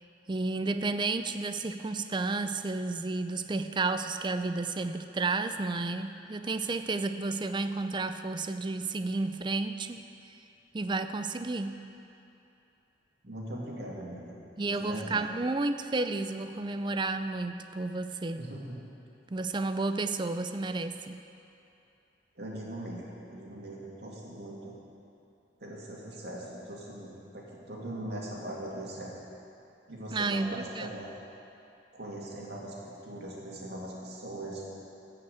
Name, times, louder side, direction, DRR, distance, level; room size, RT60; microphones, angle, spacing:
voice 1, 0.3-10.1 10.7-11.9 14.6-18.5 19.3-21.2 30.1-30.9, right 3 dB, 25° right, 9 dB, 0.4 m, -32 dB
voice 2, 13.2-14.4 14.7-15.2 18.4-18.8 22.4-24.7 25.6-29.1 29.9-31.1 31.9-34.6, right 1 dB, 60° right, -4 dB, 2.4 m, -40 dB
14.0 x 5.8 x 8.1 m, 2.8 s
head